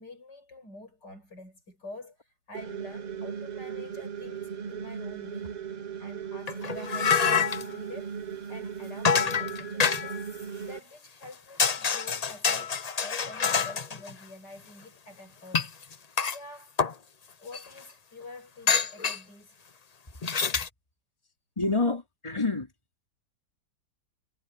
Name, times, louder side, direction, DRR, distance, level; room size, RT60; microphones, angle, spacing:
voice 1, 0.0-5.6 6.0-8.2 8.5-10.2 10.7-15.7 16.3-16.8 17.4-19.6, left 2 dB, 75° left, 8.5 m, -47 dB
sound 1, 2.5-10.8, right 7 dB, 50° right, 0.5 m, -37 dB
sound 2, 6.5-7.7 9.0-10.2 11.2-11.3 11.6-14.1 15.5-16.4 16.8-16.9 17.5-17.6 18.7-19.2 20.2-20.7, left 6 dB, 45° left, 0.5 m, -26 dB
voice 2, 21.6-22.7, left 3 dB, 15° left, 3.4 m, -27 dB
omnidirectional pair, 1.8 m